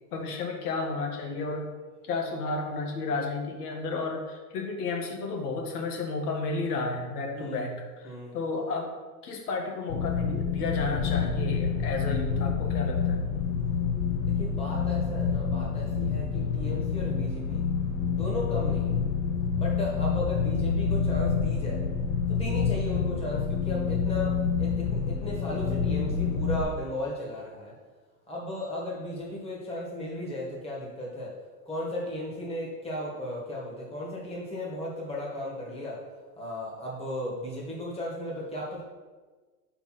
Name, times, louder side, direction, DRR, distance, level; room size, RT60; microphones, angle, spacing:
voice 1, 0.1-1.7 2.0-8.9 9.2-13.2, left 3 dB, 70° left, 2 dB, 1.7 m, -32 dB
voice 2, 7.3-7.7 8.0-8.4 14.2-17.6 18.1-19.0 19.5-21.8 22.3-27.8 28.3-31.3 31.6-36.0 36.4-38.8, left 1 dB, 10° left, -3 dB, 1.5 m, -35 dB
sound 1, 9.9-26.6, left 6 dB, 55° left, 0.8 m, -28 dB
5.4 x 4.6 x 5.8 m, 1.3 s
supercardioid pair, 150°, 47 cm